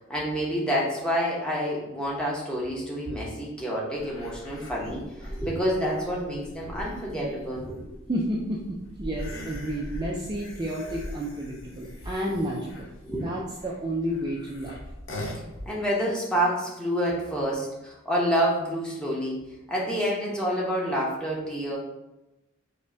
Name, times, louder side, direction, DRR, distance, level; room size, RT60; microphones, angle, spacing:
voice 1, 0.1-7.8 13.0-13.2 15.7-21.8, equal, 5° left, -4 dB, 0.8 m, -28 dB
sound 1, 4.0-15.7, left 1 dB, 85° left, 0.9 m, -41 dB
voice 2, 8.1-8.6 9.0-12.9 13.2-14.8, right 1 dB, 20° right, -4 dB, 0.4 m, -31 dB
5.1 x 2.2 x 2.6 m, 0.94 s
head